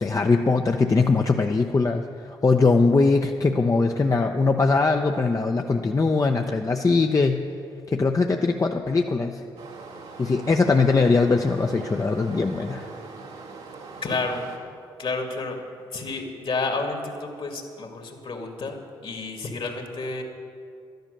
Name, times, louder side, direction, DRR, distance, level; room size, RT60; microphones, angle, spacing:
voice 1, 0.0-7.4 7.9-9.4 10.2-12.9, left 3 dB, 30° left, 4 dB, 0.7 m, -21 dB
Stream, 9.6-14.6, right 4 dB, 80° right, 1.6 m, -42 dB
voice 2, 14.0-14.5 15.0-15.6 15.9-20.2, left 3 dB, 55° left, 3 dB, 2.2 m, -30 dB
12.0 x 10.5 x 6.6 m, 2.4 s
supercardioid pair, 50°, 11 cm